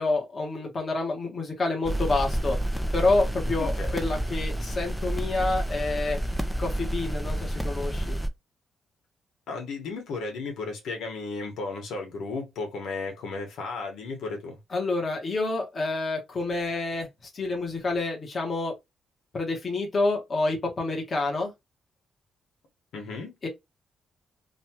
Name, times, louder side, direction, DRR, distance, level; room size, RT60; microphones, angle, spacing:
voice 1, 0.0-2.6 2.9-6.2 6.6-8.1 14.7-18.7 19.3-21.5 23.4-23.5, left 2 dB, 30° left, 1.0 m, -28 dB
sound 1, 1.8-8.3, right 1 dB, ahead, 0.4 m, -29 dB
voice 2, 3.6-4.1 9.5-14.6 22.9-23.4, left 3 dB, 85° left, 1.3 m, -34 dB
3.0 x 2.3 x 2.9 m
cardioid pair, 165°, 0 cm